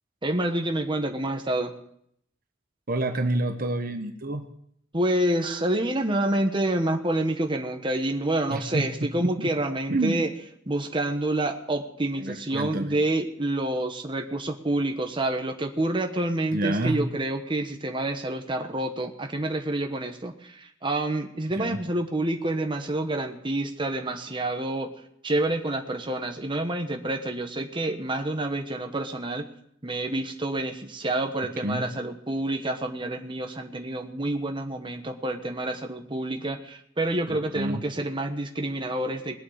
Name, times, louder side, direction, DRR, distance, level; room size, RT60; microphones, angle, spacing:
voice 1, 0.2-1.8 4.9-10.3 10.7-24.9 25.2-29.5 29.8-39.4, right 1 dB, 25° right, 4 dB, 1.2 m, -28 dB
voice 2, 2.9-4.4 8.5-9.5 9.9-10.2 12.2-12.9 16.5-17.0 21.6-21.8 31.6-31.9 37.5-37.8, right 1 dB, 50° right, 7 dB, 1.1 m, -28 dB
20.5 x 8.4 x 6.5 m, 0.70 s
head